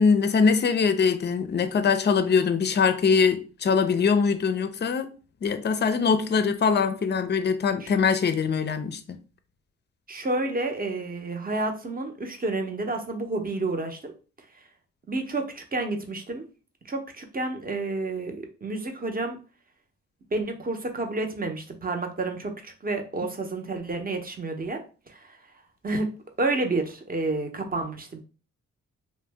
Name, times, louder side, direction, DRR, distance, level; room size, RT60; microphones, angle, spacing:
voice 1, 0.0-5.1 5.4-9.2, left 5 dB, 35° left, 0.5 m, -22 dB
voice 2, 10.1-14.1 15.1-16.4 16.8-19.4 20.3-24.8 25.1-25.4 25.8-26.1 26.4-28.2, right 2 dB, 30° right, 0.7 m, -30 dB
2.6 x 2.1 x 3.3 m
cardioid pair, 55°, 32 cm